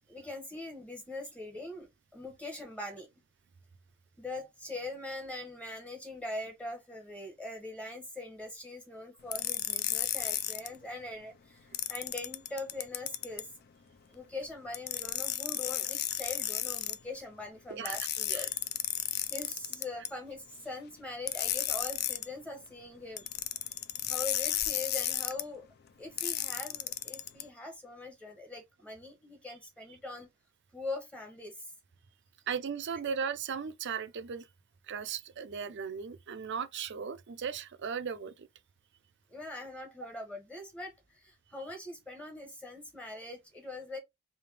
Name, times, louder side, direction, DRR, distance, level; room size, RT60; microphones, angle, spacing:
voice 1, 0.1-3.1 4.2-13.5 14.1-18.5 19.0-23.2 24.1-25.7 26.0-30.3 30.7-31.7 39.3-44.0, left 2 dB, 5° left, 0.9 m, -42 dB
sound 1, 9.3-10.7 11.7-13.4 14.7-17.0 17.9-20.1 21.3-22.3 23.2-25.4 26.2-27.4, left 12 dB, 45° left, 0.3 m, -33 dB
voice 2, 32.5-34.5 34.9-38.5, right 6 dB, 55° right, 0.5 m, -37 dB
3.3 x 2.7 x 3.3 m
head